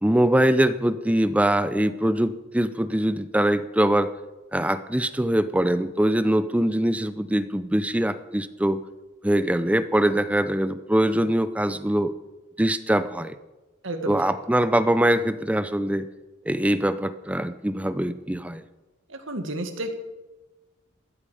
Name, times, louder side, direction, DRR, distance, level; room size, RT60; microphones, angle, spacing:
voice 1, 0.0-4.1 4.5-8.8 9.2-12.1 12.6-13.3 14.1-16.1 16.5-18.6, right 1 dB, 5° right, 13 dB, 0.5 m, -23 dB
voice 2, 13.8-14.2 19.1-19.9, right 2 dB, 75° right, 6 dB, 1.9 m, -31 dB
14.5 x 14.0 x 5.0 m, 1.1 s
head